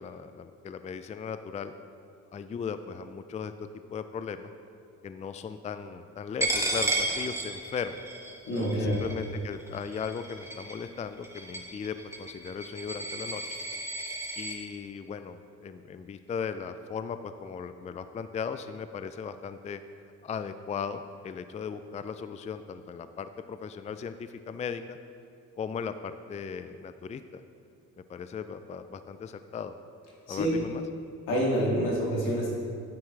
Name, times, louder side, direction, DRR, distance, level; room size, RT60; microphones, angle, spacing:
voice 1, 0.0-1.7 2.3-3.5 3.9-4.5 5.0-8.1 8.7-13.4 14.4-19.8 20.2-25.0 25.6-27.4 28.0-29.7 30.3-30.8, left 6 dB, 25° left, 11 dB, 0.3 m, -37 dB
Coin (dropping), 6.4-14.6, right 2 dB, 10° right, 1.4 m, -33 dB
voice 2, 8.4-9.0 30.3-30.5 31.3-32.6, equal, 85° left, -4 dB, 2.3 m, -27 dB
9.6 x 8.6 x 3.3 m, 2.3 s
cardioid pair, 90°, 30 cm